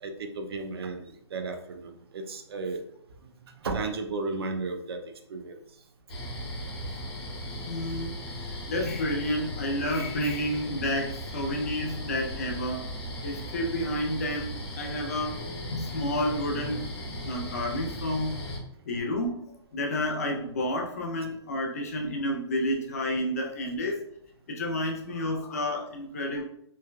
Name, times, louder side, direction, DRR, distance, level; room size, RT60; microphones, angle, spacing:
voice 1, 0.0-2.8 3.2-5.0 5.3-5.6, right 3 dB, 60° right, 5 dB, 0.4 m, -34 dB
sound 1, 6.1-18.6, equal, 60° left, 1.1 m, -37 dB
voice 2, 7.7-8.2 8.4-12.9 13.2-15.4 15.7-16.9 17.2-18.4 18.9-19.4 19.7-24.1 24.5-26.4, left 1 dB, 35° left, 1 dB, 0.4 m, -30 dB
3.1 x 2.1 x 2.3 m, 0.71 s
hypercardioid pair, 175°, 14 cm